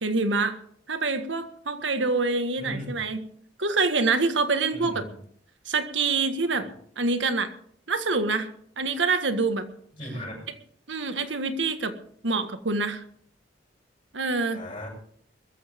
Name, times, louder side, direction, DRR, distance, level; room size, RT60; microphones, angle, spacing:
voice 1, 0.0-0.6 0.9-3.2 3.6-5.1 5.7-6.7 7.0-7.5 7.9-8.5 8.8-9.7 10.9-12.0 12.2-13.0 14.1-14.7, right 3 dB, 90° right, 9 dB, 1.7 m, -26 dB
voice 2, 2.6-3.0 4.7-5.0 10.0-10.5 14.5-14.9, equal, 30° left, -7 dB, 7.9 m, -37 dB
21.5 x 14.0 x 3.7 m, 0.62 s
head